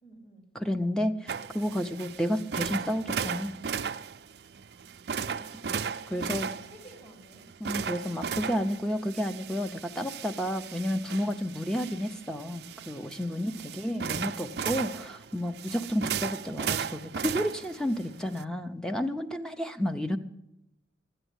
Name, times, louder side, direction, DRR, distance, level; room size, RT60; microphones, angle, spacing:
voice 1, 0.0-0.5 4.6-5.0 5.4-7.4, right 1 dB, 35° left, -1 dB, 4.1 m, -54 dB
voice 2, 0.5-3.6 5.6-5.8 6.1-6.5 7.6-20.2, equal, 5° left, 8 dB, 0.6 m, -31 dB
sound 1, 1.3-18.4, right 7 dB, 60° right, 0.4 m, -36 dB
12.5 x 10.0 x 8.1 m, 0.87 s
head